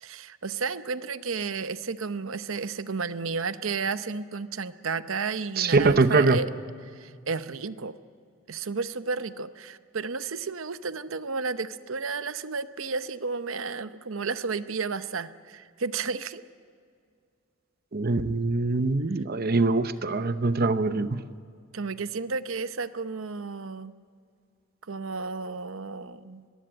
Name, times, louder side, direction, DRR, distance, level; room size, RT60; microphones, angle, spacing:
voice 1, 0.0-6.5 6.8-7.9 8.5-16.4 21.7-23.9 24.9-26.4, right 4 dB, 75° right, 12 dB, 0.8 m, -32 dB
voice 2, 5.6-6.4 17.9-21.2, right 3 dB, 45° right, 11 dB, 0.8 m, -23 dB
21.5 x 15.5 x 9.1 m, 2.2 s
head